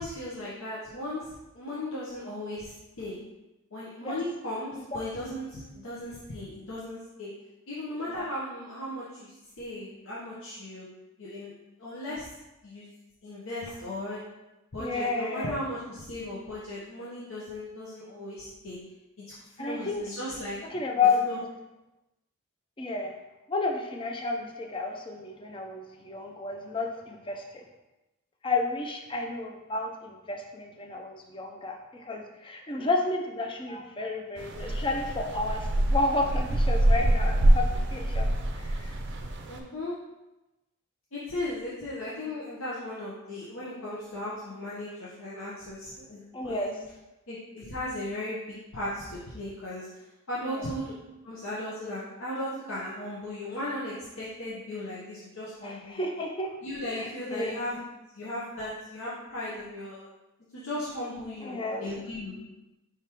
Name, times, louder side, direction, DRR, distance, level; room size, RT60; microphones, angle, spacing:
voice 1, 0.0-3.2 3.7-7.3 7.7-10.9 11.2-11.5 11.8-12.3 12.6-12.9 13.2-14.2 14.7-18.8 19.2-20.6 21.2-21.4 39.5-40.0 41.1-46.7 47.3-49.9 50.3-50.9 51.2-56.1 56.6-57.8 58.1-60.1 60.5-62.4, left 1 dB, 70° left, -8 dB, 0.8 m, -36 dB
voice 2, 14.8-15.6 19.6-20.0 20.7-21.4 22.8-23.1 23.5-27.6 28.4-38.9 46.3-46.7 50.6-50.7 55.6-56.5 57.0-57.6 61.4-61.8, left 3 dB, 25° left, 2 dB, 0.4 m, -31 dB
sound 1, 34.4-39.6, right 1 dB, 55° right, 0.5 m, -25 dB
4.8 x 3.5 x 2.9 m, 1.0 s
head